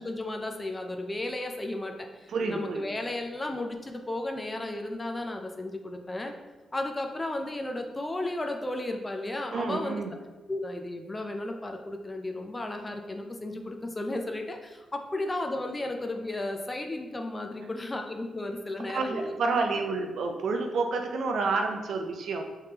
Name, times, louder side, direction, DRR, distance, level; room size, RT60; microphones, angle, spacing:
voice 1, 0.0-6.3 6.7-10.0 10.5-19.3, left 1 dB, 20° left, 4 dB, 0.4 m, -34 dB
voice 2, 2.3-2.9 9.5-10.1 18.9-22.4, right 3 dB, 70° right, 4 dB, 0.4 m, -29 dB
3.5 x 3.2 x 2.8 m, 1.2 s
cardioid pair, 85°, 0 cm